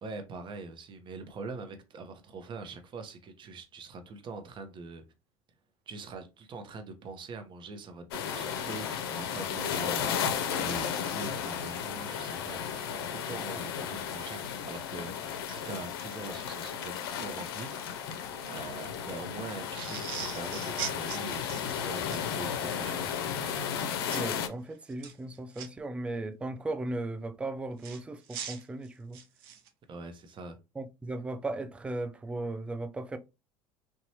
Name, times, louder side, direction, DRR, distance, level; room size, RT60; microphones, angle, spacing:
voice 1, 0.0-5.0 5.9-15.1 15.4-18.1 18.5-23.2 29.9-30.6, right 3 dB, 40° right, 0.7 m, -43 dB
sound 1, 8.1-24.5, left 8 dB, 90° left, 0.5 m, -34 dB
sound 2, 19.7-22.2 24.1-24.3 24.9-25.7 27.8-29.7, right 8 dB, 85° right, 0.6 m, -40 dB
voice 2, 24.1-29.2 30.8-33.2, right 2 dB, 10° right, 0.3 m, -36 dB
2.9 x 2.2 x 2.7 m
supercardioid pair, 90°, 12 cm